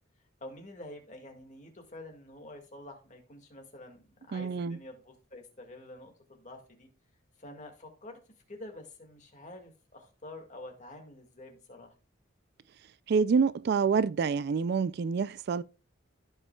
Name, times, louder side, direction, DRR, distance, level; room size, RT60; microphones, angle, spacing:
voice 1, 0.4-6.9 7.4-8.2 8.5-11.9, left 1 dB, 35° left, 2.0 m, -48 dB
voice 2, 4.3-4.8 13.1-15.6, right 5 dB, 55° right, 0.3 m, -27 dB
15.0 x 5.6 x 2.3 m
head